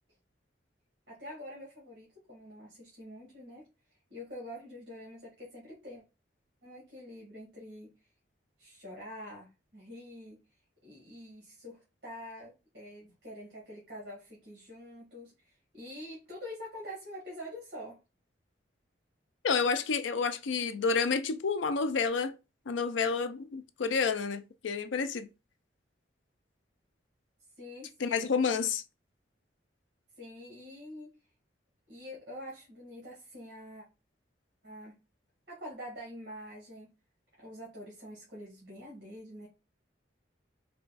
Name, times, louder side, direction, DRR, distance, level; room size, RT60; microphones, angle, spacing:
voice 1, 1.1-3.6 4.1-6.0 6.6-7.9 8.6-10.4 10.8-18.0 27.6-28.3 30.2-31.1 31.9-33.8 34.6-35.0 35.5-36.9 37.4-39.5, equal, 60° right, 1.7 m, -46 dB
voice 2, 19.4-22.3 22.7-25.3 28.0-28.8, left 5 dB, 85° left, 0.5 m, -29 dB
4.0 x 2.3 x 4.0 m
head